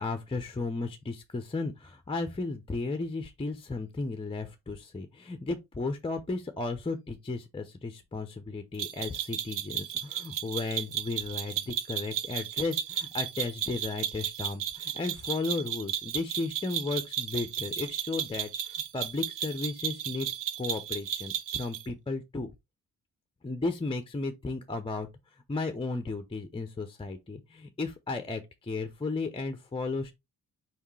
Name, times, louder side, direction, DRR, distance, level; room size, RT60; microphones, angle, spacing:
voice 1, 0.0-20.3 20.6-22.5 23.4-25.1 25.5-30.1, left 3 dB, 15° left, 0.6 m, -34 dB
sound 1, 8.8-21.9, right 10 dB, 60° right, 0.6 m, -34 dB
4.6 x 3.5 x 3.2 m
cardioid pair, 75°, 36 cm